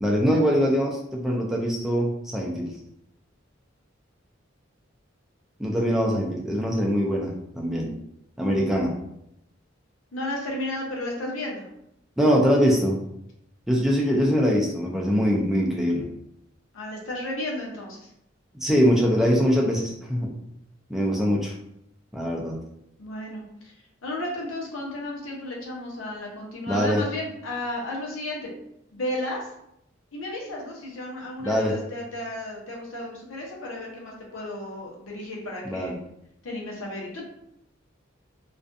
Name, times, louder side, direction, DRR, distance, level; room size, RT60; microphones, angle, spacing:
voice 1, 0.0-2.7 5.6-7.9 8.4-8.9 12.2-13.0 13.7-16.1 18.5-20.3 20.9-21.5 22.1-22.6 26.7-27.0 31.4-31.7 35.7-36.0, equal, ahead, -3 dB, 0.3 m, -23 dB
voice 2, 10.1-11.7 16.7-18.1 23.0-23.7 24.0-28.5 28.9-29.5 30.1-36.0 36.4-37.3, left 1 dB, 85° left, -2 dB, 0.8 m, -33 dB
2.4 x 2.2 x 2.5 m, 0.78 s
head